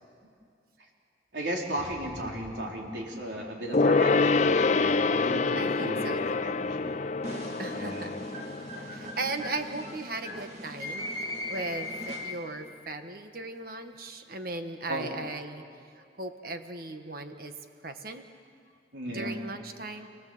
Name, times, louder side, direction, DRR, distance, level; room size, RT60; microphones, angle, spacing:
voice 1, 1.3-7.0 7.7-8.2 8.8-8.9 14.9-15.1 18.9-19.4, equal, 75° right, -1 dB, 3.9 m, -36 dB
Gong, 3.7-9.6 9.9-10.0, left 3 dB, 40° left, 0.5 m, -26 dB
voice 2, 5.2-6.5 7.6-8.1 8.8-11.1 11.5-15.6 16.0-17.5 17.8-18.2 19.1-20.1, right 2 dB, 50° right, 7 dB, 1.5 m, -37 dB
sound 1, 7.2-12.7, left 1 dB, 35° right, 2.4 m, -39 dB
29.5 x 18.0 x 7.9 m, 2.4 s
head